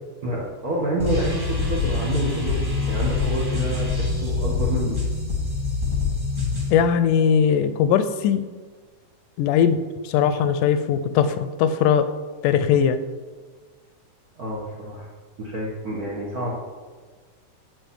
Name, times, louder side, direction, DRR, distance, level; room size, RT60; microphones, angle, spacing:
voice 1, 0.2-2.6 2.9-5.0 14.4-15.1 15.4-16.5, right 1 dB, 70° right, -3 dB, 0.8 m, -28 dB
sound 1, 1.0-6.7, left 4 dB, 15° right, 0.7 m, -25 dB
voice 2, 6.7-8.5 9.4-12.1 12.4-13.0, left 8 dB, 80° left, 11 dB, 2.0 m, -20 dB
8.9 x 4.7 x 7.3 m, 1.5 s
omnidirectional pair, 3.8 m